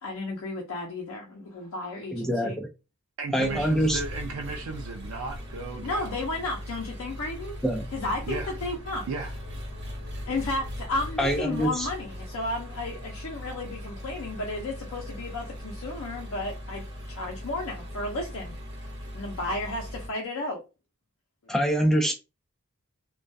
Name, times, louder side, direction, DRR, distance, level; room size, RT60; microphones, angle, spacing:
voice 1, 0.0-2.6 3.4-3.6 5.8-7.5 7.9-9.1 10.3-18.6 19.1-20.6, left 2 dB, 75° left, 0.5 m, -33 dB
voice 2, 2.1-2.7 3.3-4.0 7.6-7.8 11.2-11.9 21.5-22.1, equal, ahead, 0.5 m, -24 dB
voice 3, 3.2-6.2 8.3-8.5 9.1-9.3, right 4 dB, 90° right, 0.4 m, -35 dB
Engine, 3.4-20.1, left 1 dB, 55° right, 0.9 m, -39 dB
2.2 x 2.2 x 2.5 m
head